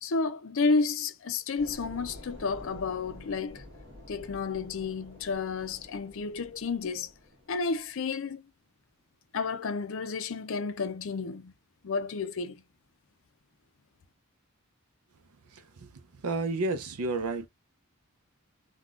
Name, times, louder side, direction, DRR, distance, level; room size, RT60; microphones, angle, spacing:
voice 1, 0.0-3.6 4.1-7.1 7.5-8.4 9.3-11.5 11.8-12.6, left 4 dB, 60° left, 0.5 m, -31 dB
sound 1, 1.6-7.9, left 1 dB, 60° right, 1.6 m, -49 dB
voice 2, 16.2-17.5, right 3 dB, 85° right, 0.6 m, -30 dB
3.6 x 2.3 x 2.4 m
head